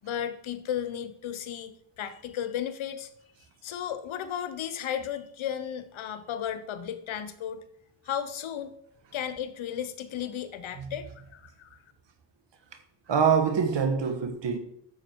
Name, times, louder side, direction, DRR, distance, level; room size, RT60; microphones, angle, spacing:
voice 1, 0.0-3.1 3.6-7.7 8.0-8.7 9.1-11.8, left 9 dB, 70° left, 1.0 m, -34 dB
voice 2, 13.1-14.6, right 6 dB, 60° right, 1.7 m, -24 dB
9.8 x 7.3 x 4.6 m
supercardioid pair, 55°, 49 cm